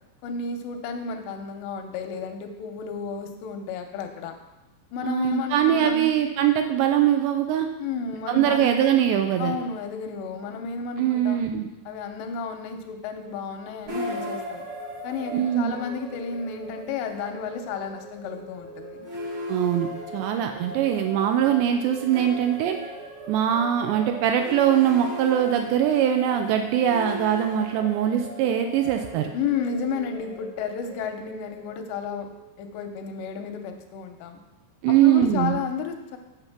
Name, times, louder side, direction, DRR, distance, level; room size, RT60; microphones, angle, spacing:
voice 1, 0.2-4.3 4.9-6.1 7.8-8.7 9.4-11.4 11.9-14.7 15.0-19.1 29.3-32.3 32.6-34.4 34.9-36.2, left 5 dB, 85° left, 5 dB, 2.6 m, -32 dB
voice 2, 5.0-7.7 8.3-9.6 11.0-11.7 15.3-15.8 19.5-22.8 23.3-29.3 34.8-35.6, right 10 dB, 85° right, 5 dB, 2.6 m, -22 dB
sound 1, 13.9-33.0, equal, 55° right, 1.4 m, -38 dB
8.9 x 5.6 x 5.9 m, 1.0 s
omnidirectional pair, 5.4 m